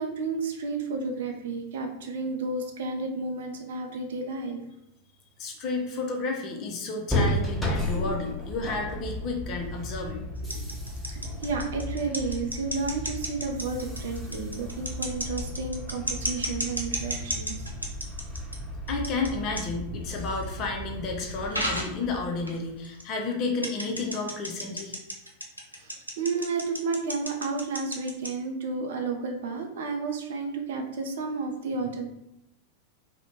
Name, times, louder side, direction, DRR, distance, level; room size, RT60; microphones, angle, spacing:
voice 1, 0.0-4.6 7.9-8.2 10.4-10.6 11.1-17.7 25.8-32.1, right 4 dB, 60° right, 3 dB, 0.3 m, -32 dB
voice 2, 5.4-10.2 18.9-24.9, left 3 dB, 35° left, 1 dB, 0.5 m, -31 dB
sound 1, 7.1-22.8, left 1 dB, 5° left, 0.7 m, -34 dB
Key Tapping, 10.4-18.6 18.9-19.3 19.6-19.7 20.4-20.5 21.5-21.9 22.5-22.6 22.8-23.0 23.6-28.3, equal, 90° left, 0.4 m, -32 dB
2.5 x 2.1 x 2.9 m, 0.86 s
figure-of-eight pair, 90°, 0 cm